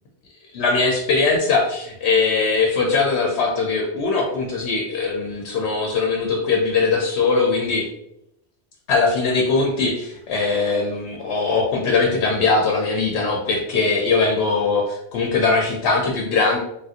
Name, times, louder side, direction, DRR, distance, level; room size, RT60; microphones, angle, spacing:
voice 1, 0.5-7.9 8.9-16.6, left 4 dB, 80° left, 0 dB, 0.8 m, -21 dB
3.5 x 2.4 x 2.7 m, 0.80 s
omnidirectional pair, 1.1 m